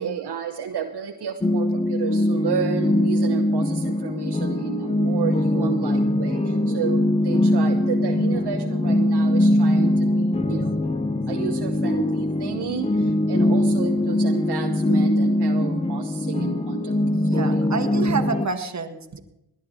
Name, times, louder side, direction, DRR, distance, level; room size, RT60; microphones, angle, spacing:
voice 1, 0.0-10.8 11.3-17.7, right 9 dB, 60° right, 4 dB, 1.1 m, -32 dB
sound 1, 1.4-18.5, left 1 dB, 15° left, 0.8 m, -22 dB
voice 2, 17.1-19.2, right 5 dB, 40° right, 6 dB, 1.7 m, -29 dB
19.0 x 10.5 x 4.2 m, 0.86 s
supercardioid pair, 50°, 44 cm